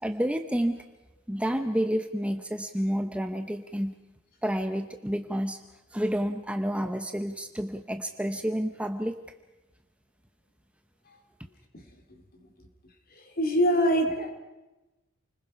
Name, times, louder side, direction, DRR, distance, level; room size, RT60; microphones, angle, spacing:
voice 1, 0.0-0.8 1.3-4.0 4.4-5.6 5.9-9.1, equal, 5° right, 7 dB, 0.8 m, -29 dB
voice 2, 13.1-14.3, equal, 45° left, 5 dB, 3.0 m, -25 dB
28.5 x 20.5 x 5.7 m, 1.1 s
head